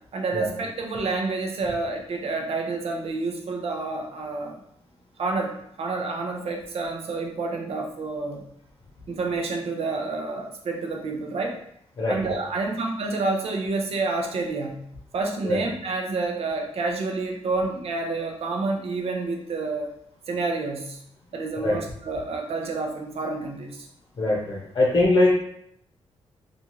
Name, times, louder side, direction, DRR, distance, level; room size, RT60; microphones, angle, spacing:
voice 1, 0.1-4.6 5.2-8.4 9.1-11.6 12.1-14.9 15.1-19.9 20.3-21.0 21.3-23.9, right 3 dB, 65° right, 2 dB, 0.6 m, -29 dB
voice 2, 24.2-25.4, left 2 dB, 45° left, -4 dB, 0.7 m, -21 dB
2.5 x 2.3 x 3.0 m, 0.70 s
cardioid pair, 85°, 11 cm